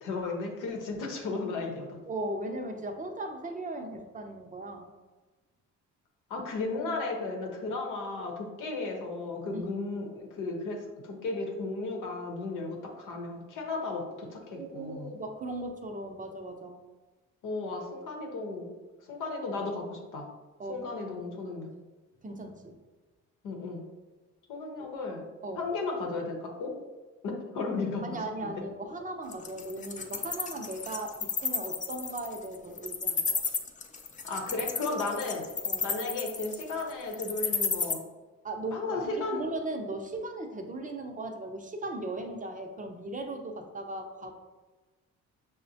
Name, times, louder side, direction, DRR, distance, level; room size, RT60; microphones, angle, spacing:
voice 1, 0.0-2.0 6.3-15.1 17.4-18.7 19.0-20.2 20.7-21.7 23.4-23.8 24.5-25.2 25.6-26.7 27.2-28.0 28.4-28.5 34.2-35.4 35.8-38.0 38.7-39.5, left 3 dB, 90° left, 1 dB, 0.9 m, -34 dB
voice 2, 2.1-4.9 9.5-9.8 14.5-16.8 20.6-20.8 22.2-22.8 25.4-25.7 28.0-33.4 35.6-35.9 38.4-44.3, right 2 dB, 25° right, 4 dB, 0.5 m, -38 dB
Wild animals, 29.3-37.9, left 5 dB, 25° left, 0.4 m, -32 dB
6.0 x 2.1 x 2.7 m, 1.3 s
cardioid pair, 90°, 30 cm